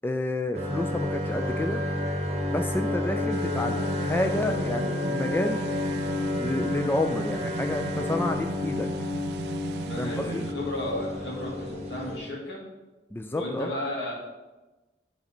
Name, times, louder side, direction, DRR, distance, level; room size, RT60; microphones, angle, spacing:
voice 1, 0.0-1.8 2.5-5.6 6.4-8.9 10.0-10.4 13.1-13.7, left 1 dB, 10° left, 5 dB, 0.3 m, -29 dB
sound 1, 0.5-12.2, left 2 dB, 40° right, 1.1 m, -30 dB
sound 2, 1.3-8.7 9.0-9.1 9.4-9.5, equal, 55° left, 1.5 m, -43 dB
sound 3, 3.3-10.5, right 5 dB, 65° right, 0.3 m, -37 dB
voice 2, 9.9-12.6 13.3-14.1, left 1 dB, 80° left, -3 dB, 2.4 m, -33 dB
10.5 x 4.1 x 4.4 m, 1.1 s
head